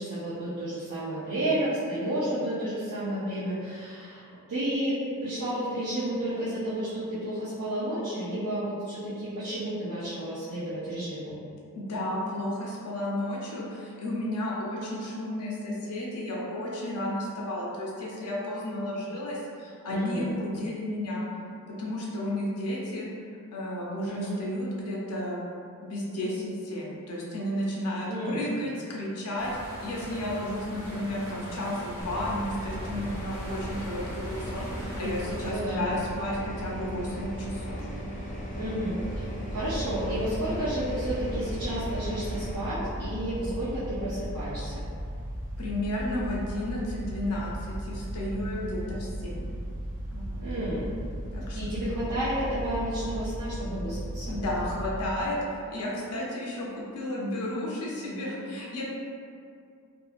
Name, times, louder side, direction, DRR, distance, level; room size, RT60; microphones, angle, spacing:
voice 1, 0.0-11.3 19.9-20.4 24.0-24.3 28.1-28.4 35.4-35.8 38.6-39.2 39.5-44.8 50.4-50.9 51.5-54.4, right 1 dB, 75° right, -12 dB, 0.6 m, -31 dB
voice 2, 11.7-21.2 21.8-23.1 23.5-25.4 25.8-37.8 38.5-38.7 45.6-49.5 50.1-50.4 51.3-51.6 54.3-58.8, left 1 dB, 80° left, -4 dB, 0.6 m, -32 dB
sound 1, 29.4-35.5, equal, 15° right, 1.3 m, -41 dB
sound 2, 32.0-42.6, equal, 35° left, 0.4 m, -37 dB
sound 3, 39.0-54.9, equal, 35° right, 0.3 m, -36 dB
2.7 x 2.5 x 2.4 m, 2.3 s
head